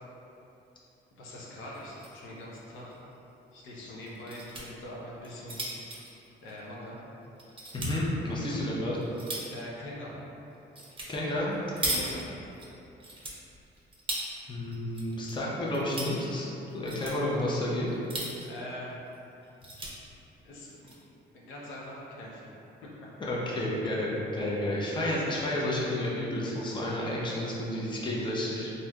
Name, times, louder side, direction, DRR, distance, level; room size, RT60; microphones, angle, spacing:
voice 1, 1.1-3.0 3.5-5.6 6.4-7.0 9.5-10.2 11.8-12.3 18.4-19.0 20.4-21.0 21.3-22.5, left 1 dB, 80° left, -5 dB, 0.6 m, -42 dB
sound 1, 1.7-2.2 2.5-2.6 2.9-3.0 4.0-4.6 5.2-7.0 7.4-7.9 8.6-9.6 10.8-11.1 11.4-12.7 13.0-14.3 14.7-15.3 15.6-16.1 16.7-17.2 17.9-18.6 19.1-19.2 19.4-19.9 20.6-20.9, right 1 dB, 25° right, 0.6 m, -37 dB
voice 2, 7.7-9.0 11.1-11.6 14.5-16.5 16.7-17.9 23.3-28.7, left 1 dB, 25° left, -5 dB, 0.6 m, -31 dB
3.3 x 2.5 x 2.2 m, 2.9 s
cardioid pair, 90°, 20 cm